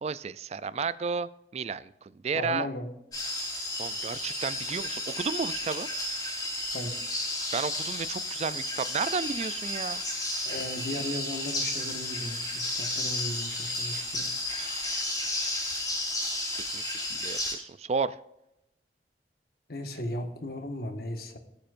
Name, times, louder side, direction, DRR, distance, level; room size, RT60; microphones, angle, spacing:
voice 1, 0.0-2.7 3.8-5.9 7.5-10.0 14.5-15.6 16.7-18.2, right 5 dB, 35° right, 17 dB, 0.3 m, -33 dB
voice 2, 2.3-2.9 6.7-7.0 10.4-14.3 19.7-21.4, left 1 dB, 60° left, 6 dB, 1.6 m, -36 dB
sound 1, 3.1-17.5, left 1 dB, 20° left, 4.1 m, -33 dB
19.0 x 8.8 x 2.5 m, 0.86 s
head